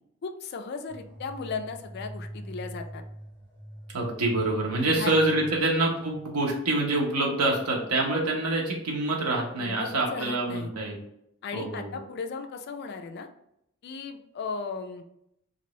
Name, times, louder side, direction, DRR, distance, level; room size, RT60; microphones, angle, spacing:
voice 1, 0.2-3.0 4.8-5.1 5.5-5.6 9.6-10.7 11.4-13.3 13.8-15.0, left 5 dB, 50° left, 6 dB, 0.3 m, -36 dB
sound 1, 0.9-7.3, equal, 10° left, 0.8 m, -44 dB
voice 2, 3.9-11.0 11.5-12.0, right 2 dB, 90° right, -1 dB, 0.9 m, -26 dB
2.9 x 2.6 x 3.0 m, 0.78 s
head